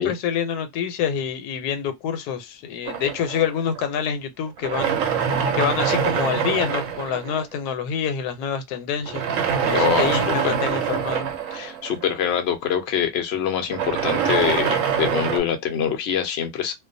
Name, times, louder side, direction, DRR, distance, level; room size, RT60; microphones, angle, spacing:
voice 1, 0.0-5.0 5.5-9.3 9.6-11.3, left 8 dB, 85° left, 1.1 m, -27 dB
sound 1, 2.9-4.1 4.6-7.7 9.1-12.5 13.6-15.4, right 7 dB, 70° right, 0.8 m, -24 dB
voice 2, 9.7-10.2 10.4-10.5 11.5-16.7, left 8 dB, 65° left, 0.6 m, -24 dB
2.4 x 2.2 x 2.5 m
omnidirectional pair, 1.6 m